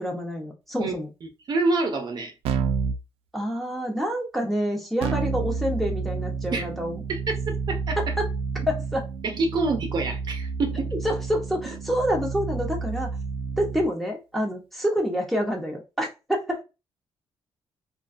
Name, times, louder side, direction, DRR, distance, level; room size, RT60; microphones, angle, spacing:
voice 1, 0.0-1.1 3.3-7.0 8.0-8.3 8.7-9.1 11.0-13.1 13.6-16.6, equal, ahead, 0.8 m, -27 dB
voice 2, 0.8-2.3 6.5-6.6 7.1-7.2 7.7-8.1 9.2-10.9, right 3 dB, 50° right, 0.6 m, -27 dB
Keyboard (musical), 2.5-3.0 5.0-13.9, right 5 dB, 85° right, 0.4 m, -30 dB
2.5 x 2.3 x 2.5 m
cardioid pair, 105°, 10 cm